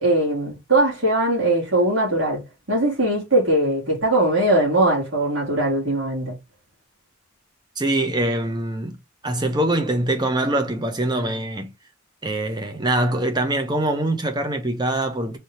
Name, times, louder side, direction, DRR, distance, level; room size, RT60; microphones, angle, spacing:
voice 1, 0.0-2.4 2.7-6.3, right 1 dB, 65° right, 1.8 m, -20 dB
voice 2, 7.8-9.0 9.2-11.7 12.2-15.4, right 1 dB, 20° right, 0.7 m, -23 dB
3.4 x 2.7 x 4.3 m
head